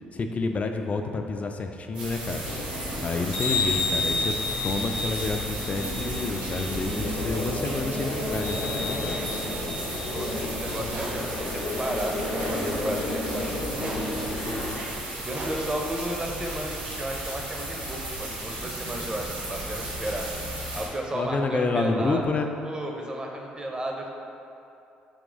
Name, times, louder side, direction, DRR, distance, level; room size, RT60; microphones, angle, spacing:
voice 1, 0.1-2.4 3.0-4.3 4.6-9.2 21.1-22.5, left 3 dB, 35° left, 5 dB, 0.3 m, -29 dB
sound 1, 1.9-20.9, right 1 dB, 75° right, 1.1 m, -35 dB
sound 2, 2.4-14.8, left 2 dB, 75° left, 0.7 m, -31 dB
voice 2, 9.3-14.7 15.2-20.3 20.7-22.2 22.6-24.1, right 1 dB, 20° right, 1 dB, 0.6 m, -34 dB
sound 3, 10.9-11.3 12.3-12.8 13.8-14.2 15.3-15.8, right 1 dB, 50° right, 0.8 m, -37 dB
3.5 x 2.9 x 3.8 m, 2.7 s
hypercardioid pair, 50°, 4 cm